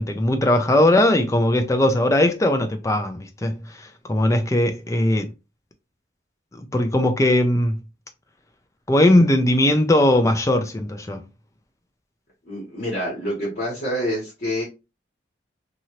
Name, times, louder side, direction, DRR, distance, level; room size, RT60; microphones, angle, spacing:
voice 1, 0.0-5.3 6.5-7.8 8.9-11.2, left 1 dB, 15° left, 0.4 m, -19 dB
voice 2, 12.4-14.6, equal, 50° left, 1.3 m, -27 dB
2.8 x 2.6 x 2.9 m
head